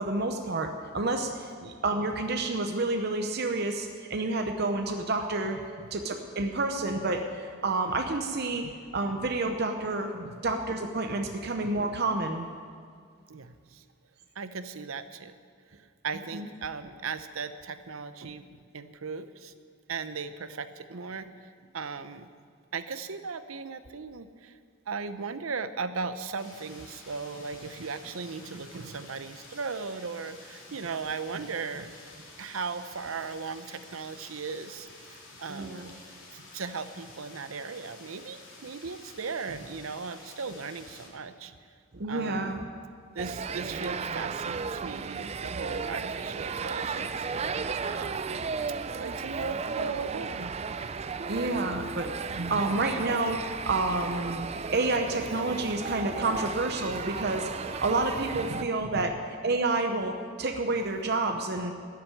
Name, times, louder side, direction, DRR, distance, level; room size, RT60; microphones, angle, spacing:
voice 1, 0.0-5.6 5.9-10.1 10.4-12.5 16.3-16.5 35.5-35.9 41.9-42.6 51.3-52.1 52.5-54.5 54.7-59.1 59.4-61.7, right 2 dB, 50° right, 4 dB, 0.8 m, -29 dB
voice 2, 13.3-13.8 14.4-15.3 15.7-18.5 18.7-19.5 19.9-22.3 22.7-24.6 24.9-31.9 32.4-35.9 36.3-41.5 42.1-42.6 43.1-50.5 51.0-51.1 52.3-52.7 58.5-59.1, right 5 dB, 90° right, 11 dB, 0.7 m, -37 dB
sound 1, 26.4-41.1, left 2 dB, 70° left, 3.3 m, -50 dB
sound 2, 43.2-58.6, right 5 dB, 30° right, 0.4 m, -34 dB
13.0 x 7.6 x 10.0 m, 2.1 s
head